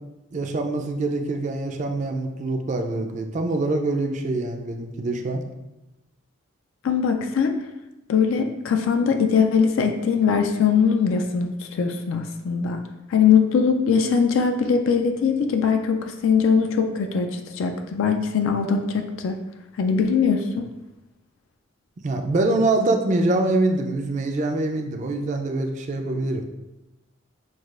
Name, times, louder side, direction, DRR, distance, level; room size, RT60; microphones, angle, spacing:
voice 1, 0.3-5.4 22.0-26.4, right 2 dB, 35° right, 4 dB, 0.3 m, -24 dB
voice 2, 6.8-7.5 8.1-12.8 13.1-19.4 19.8-20.7, left 6 dB, 75° left, 5 dB, 0.3 m, -21 dB
6.2 x 2.3 x 2.4 m, 0.99 s
head